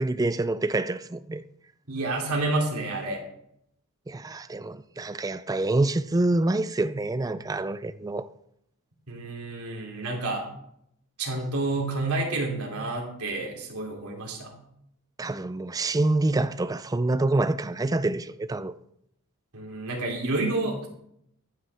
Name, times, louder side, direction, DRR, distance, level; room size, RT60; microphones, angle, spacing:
voice 1, 0.0-1.4 4.1-8.3 15.2-18.8, right 2 dB, 15° right, 0.4 m, -26 dB
voice 2, 1.9-3.2 9.1-10.5 11.2-14.5 19.5-20.9, right 2 dB, 80° right, 2.8 m, -29 dB
14.5 x 9.5 x 3.4 m
head